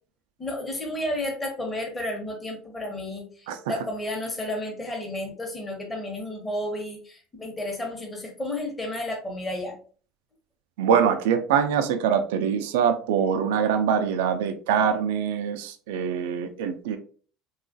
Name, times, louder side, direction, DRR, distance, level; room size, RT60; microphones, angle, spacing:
voice 1, 0.4-9.8, left 1 dB, 15° left, 0 dB, 0.9 m, -32 dB
voice 2, 3.5-3.8 10.8-17.0, right 7 dB, 85° right, 8 dB, 0.3 m, -24 dB
2.9 x 2.3 x 2.6 m, 0.41 s
supercardioid pair, 110°, 0 cm